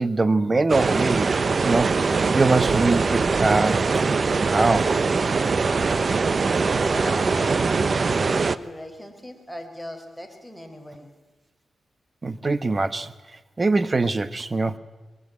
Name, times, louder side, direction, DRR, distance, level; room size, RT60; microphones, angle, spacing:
voice 1, 0.0-1.3 1.6-3.8 4.5-4.9 12.2-13.1 13.6-14.8, right 3 dB, 35° right, 14 dB, 1.3 m, -22 dB
sound 1, 0.7-8.6, right 4 dB, 50° right, 1.0 m, -22 dB
voice 2, 6.8-11.1, left 1 dB, ahead, 6 dB, 4.7 m, -38 dB
23.5 x 22.5 x 9.7 m, 1.2 s
cardioid pair, 65°, 0 cm